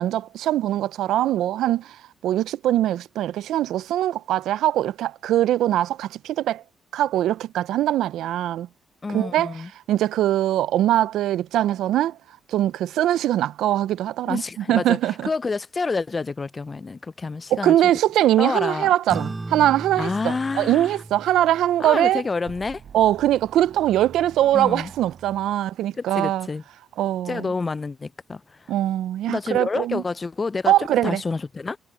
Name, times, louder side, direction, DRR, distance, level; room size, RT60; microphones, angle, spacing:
voice 1, 0.0-6.6 6.9-8.7 9.1-12.2 12.5-15.3 17.5-22.2 22.9-26.5 27.0-27.5 28.7-30.0 30.7-31.2, right 13 dB, 80° right, 0.4 m, -22 dB
voice 2, 9.0-9.7 14.3-15.0 15.3-17.8 18.4-18.9 20.0-20.9 21.8-22.8 24.5-24.9 26.0-26.6 27.3-28.6 29.3-30.7 31.0-31.8, left 4 dB, 30° left, 0.4 m, -28 dB
sound 1, 19.1-23.9, right 2 dB, 20° right, 4.8 m, -37 dB
sound 2, 22.5-25.7, right 8 dB, 55° right, 7.2 m, -45 dB
cardioid pair, 90°, 0 cm